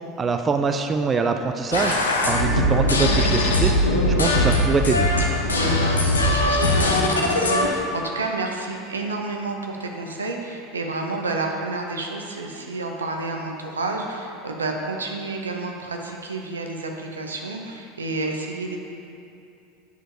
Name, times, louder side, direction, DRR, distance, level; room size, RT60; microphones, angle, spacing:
voice 1, 0.2-3.7 4.2-5.1, right 5 dB, 25° right, 6 dB, 0.3 m, -24 dB
sound 1, 1.7-7.7, left 1 dB, 85° left, 0.6 m, -20 dB
voice 2, 5.4-18.8, right 3 dB, 85° right, 2 dB, 0.6 m, -30 dB
8.0 x 6.0 x 2.6 m, 2.7 s
figure-of-eight pair, 75°, 0 cm